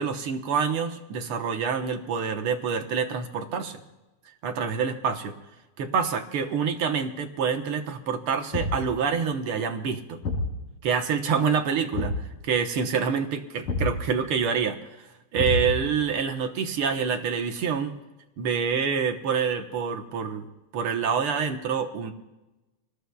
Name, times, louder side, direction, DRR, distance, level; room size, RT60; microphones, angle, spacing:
voice 1, 0.0-3.8 4.4-5.3 5.8-10.2 10.8-12.1 12.4-15.1 15.3-18.0 18.4-20.5 20.7-22.1, right 6 dB, 60° right, 4 dB, 1.7 m, -27 dB
Thump thud, 8.5-9.0 10.2-10.6 11.9-12.3 13.7-14.0 15.4-15.9, left 2 dB, 80° left, 5.4 m, -28 dB
27.5 x 19.5 x 2.3 m, 1.0 s
omnidirectional pair, 3.4 m